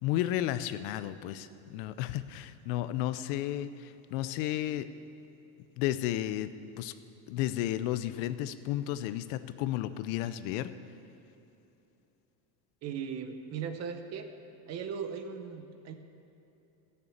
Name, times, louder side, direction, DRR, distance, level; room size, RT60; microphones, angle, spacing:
voice 1, 0.0-4.9 5.8-6.9 7.3-10.7, left 13 dB, 60° left, 13 dB, 0.7 m, -33 dB
voice 2, 12.8-14.3 14.7-16.0, right 6 dB, 35° right, 7 dB, 0.8 m, -38 dB
14.0 x 6.9 x 8.5 m, 2.8 s
cardioid pair, 170°, 45 cm